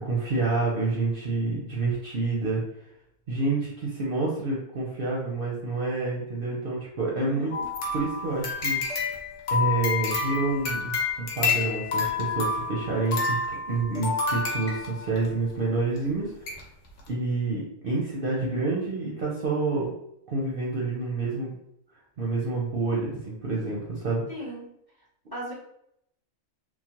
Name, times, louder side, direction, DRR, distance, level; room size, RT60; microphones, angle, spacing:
voice 1, 0.0-2.6 3.3-7.5 7.9-9.1 9.5-10.9 11.3-16.6 17.1-19.9 20.3-21.6 22.2-24.2, right 3 dB, 55° right, -4 dB, 0.7 m, -28 dB
voice 2, 7.1-7.7 24.3-24.7 25.3-25.5, right 1 dB, 20° left, -7 dB, 0.7 m, -37 dB
sound 1, 7.5-15.3 16.0-16.1 16.5-16.6 17.0-17.1, left 4 dB, 70° left, 1.0 m, -29 dB
3.1 x 2.1 x 2.8 m, 0.74 s
omnidirectional pair, 1.4 m